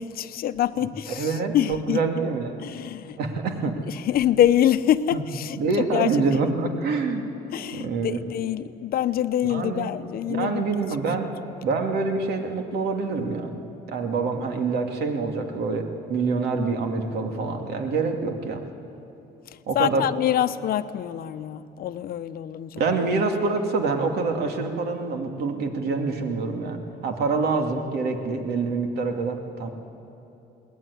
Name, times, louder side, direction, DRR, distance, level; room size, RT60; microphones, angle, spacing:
voice 1, 0.0-2.0 2.6-3.2 3.9-5.6 5.9-6.2 7.5-10.6 19.7-22.8, left 11 dB, 60° left, 12 dB, 0.9 m, -25 dB
voice 2, 1.1-2.5 3.2-3.8 5.1-5.2 5.6-7.3 7.7-8.2 9.4-9.9 10.3-11.3 11.6-13.6 13.9-18.6 19.7-20.1 22.8-29.7, right 4 dB, 70° right, 4 dB, 2.6 m, -26 dB
21.5 x 18.5 x 9.7 m, 3.0 s
cardioid pair, 110°, 17 cm